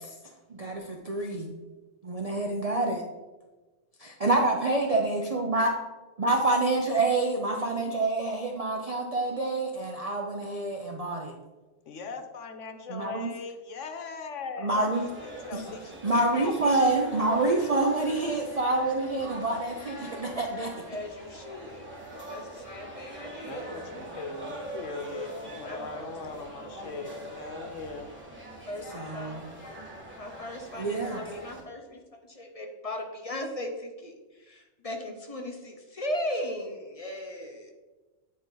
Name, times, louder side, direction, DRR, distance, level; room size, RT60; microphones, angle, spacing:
voice 1, 0.5-1.5 2.0-3.0 4.0-5.7 6.2-11.3 12.9-13.3 14.6-15.1 15.5-15.6 16.0-20.7 28.9-29.4 30.8-31.2, right 2 dB, 40° right, 1 dB, 0.6 m, -27 dB
voice 2, 11.9-15.0 15.2-15.9 16.3-16.5 23.4-28.1, left 4 dB, 80° left, 6 dB, 1.2 m, -39 dB
sound 1, 14.9-31.6, right 1 dB, 10° right, 1.6 m, -42 dB
voice 3, 20.9-23.7 25.6-26.0 28.3-28.4 28.7-37.7, left 1 dB, 35° left, 2 dB, 0.8 m, -38 dB
9.1 x 4.2 x 3.9 m, 1.2 s
omnidirectional pair, 1.3 m